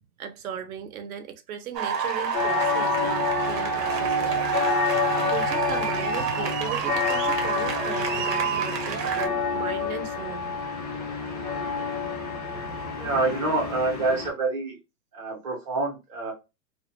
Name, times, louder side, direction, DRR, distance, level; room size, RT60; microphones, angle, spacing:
voice 1, 0.2-4.3 5.2-10.5, right 8 dB, 60° right, 0.6 m, -37 dB
sound 1, 1.7-9.3, right 5 dB, 85° right, 0.8 m, -28 dB
sound 2, 2.3-14.3, left 5 dB, 30° left, 0.3 m, -29 dB
voice 2, 12.9-14.8 15.1-16.3, right 3 dB, 20° right, 0.5 m, -27 dB
2.1 x 2.1 x 2.9 m
hypercardioid pair, 155°, 48 cm